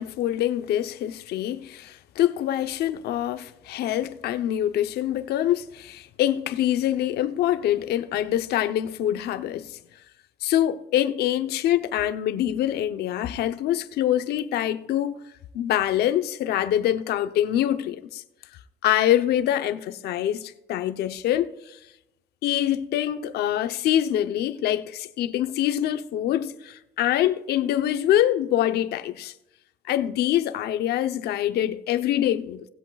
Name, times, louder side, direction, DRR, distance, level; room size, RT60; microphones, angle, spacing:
voice 1, 0.0-9.8 10.4-15.2 15.5-18.2 18.8-21.8 22.4-29.3 29.9-32.6, left 12 dB, 75° left, 0.8 m, -25 dB
18.5 x 8.1 x 2.4 m
cardioid pair, 110°, 17 cm